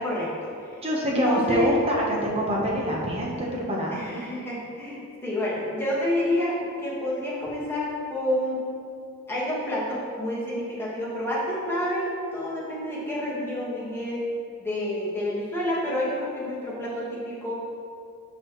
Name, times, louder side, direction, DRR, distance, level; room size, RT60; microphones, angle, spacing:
voice 1, 0.0-0.7 1.1-1.7 3.9-8.6 9.3-14.2 14.6-17.6, left 1 dB, 10° left, -7 dB, 1.6 m, -29 dB
voice 2, 0.8-4.0, equal, 25° right, -3 dB, 1.0 m, -25 dB
11.5 x 4.1 x 3.1 m, 2.4 s
head